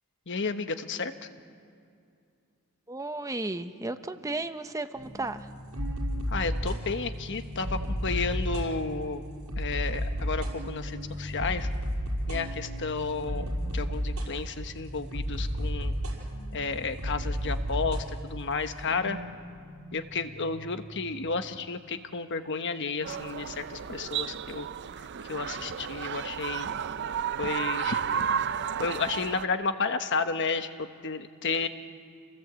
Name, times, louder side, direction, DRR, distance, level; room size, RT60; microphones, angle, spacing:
voice 1, 0.3-1.1 6.3-9.2 9.6-11.7 12.3-16.0 16.5-19.2 19.9-24.7 25.3-26.7 27.4-28.0 28.8-31.7, left 4 dB, 55° left, 9 dB, 1.1 m, -32 dB
voice 2, 2.9-5.5, right 2 dB, 15° right, 9 dB, 0.8 m, -34 dB
sound 1, 5.0-21.2, equal, 75° right, 5.8 m, -33 dB
sound 2, 23.0-29.4, right 7 dB, 50° right, 0.5 m, -32 dB
28.0 x 18.0 x 8.1 m, 2.4 s
head